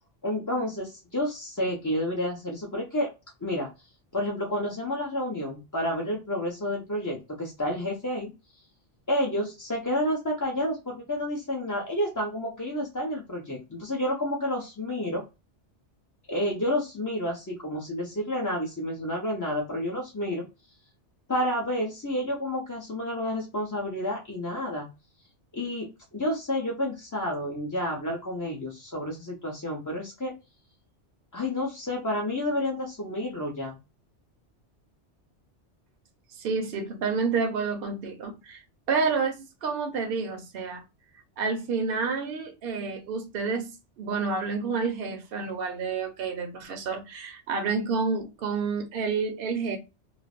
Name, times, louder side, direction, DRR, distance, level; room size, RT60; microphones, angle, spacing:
voice 1, 0.2-3.1 3.4-3.7 4.1-8.3 9.1-15.2 16.3-20.5 21.3-24.9 25.5-30.3 31.3-33.8, left 1 dB, 25° left, 0.4 m, -30 dB
voice 2, 36.3-38.6 38.9-40.8 41.4-49.8, right 4 dB, 60° right, 0.7 m, -29 dB
3.1 x 2.0 x 2.3 m
omnidirectional pair, 1.2 m